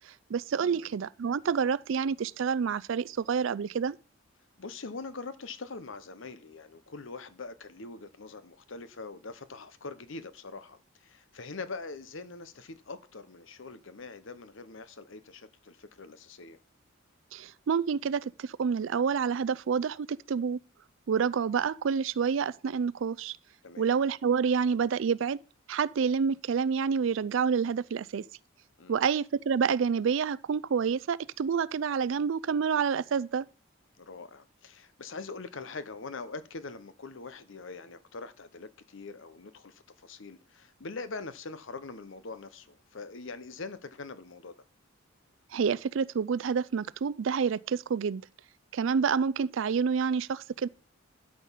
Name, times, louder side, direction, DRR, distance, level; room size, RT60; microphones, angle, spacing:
voice 1, 0.1-4.0 17.3-20.6 21.1-23.4 23.8-25.4 25.7-28.2 28.9-33.4 45.5-48.2 48.7-50.7, right 6 dB, 65° right, 0.4 m, -28 dB
voice 2, 4.6-16.6 23.6-23.9 28.8-29.1 34.0-44.6, left 3 dB, 65° left, 0.8 m, -43 dB
12.0 x 5.1 x 5.6 m
head